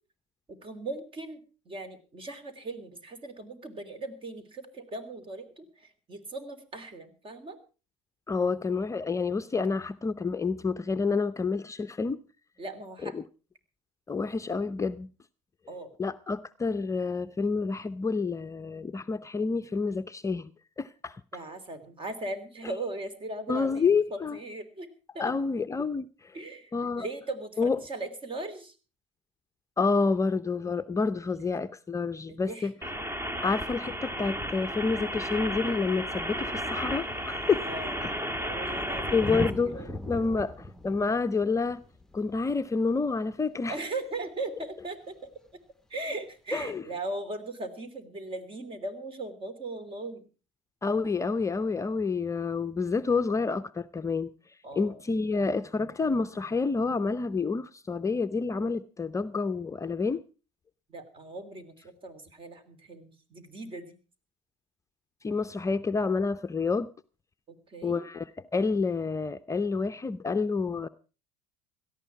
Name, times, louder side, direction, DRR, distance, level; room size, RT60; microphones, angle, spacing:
voice 1, 0.5-7.6 12.6-13.1 15.7-15.9 21.3-24.9 25.1-25.3 26.3-26.7 27.0-28.7 31.4-31.7 32.3-32.7 33.3-33.4 37.6-38.0 38.4-39.2 39.5-40.0 43.7-45.3 45.9-50.3 54.6-55.0 60.9-63.9 67.5-68.1, right 2 dB, 35° right, 3.2 m, -39 dB
voice 2, 8.3-12.2 13.0-13.2 14.1-15.1 16.0-20.5 20.8-21.2 23.5-24.4 25.2-26.4 26.7-27.1 27.6-27.8 29.8-32.7 33.4-37.7 38.0-38.1 38.6-38.7 39.1-41.8 42.1-43.8 46.5-46.8 50.8-54.3 54.8-60.2 65.2-66.9 67.8-70.9, left 4 dB, 20° left, 0.6 m, -28 dB
sound 1, 32.8-39.5, equal, 15° right, 1.5 m, -33 dB
Thunder, 34.9-35.0 35.9-36.0 36.2-43.6 45.2-45.3, left 1 dB, 5° left, 1.0 m, -41 dB
17.5 x 13.5 x 4.5 m
hypercardioid pair, 80°, 16 cm